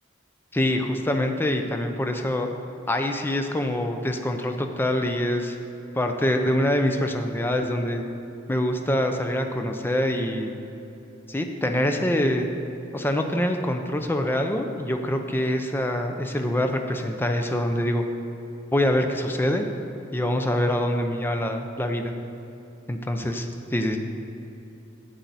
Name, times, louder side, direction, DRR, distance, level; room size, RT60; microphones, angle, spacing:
voice 1, 0.5-2.5 2.9-5.6 5.9-8.0 8.5-10.5 11.3-12.5 12.9-18.1 18.7-19.7 20.1-22.1 22.9-24.0, left 1 dB, 10° left, 5 dB, 0.5 m, -25 dB
10.0 x 7.8 x 4.1 m, 2.9 s
head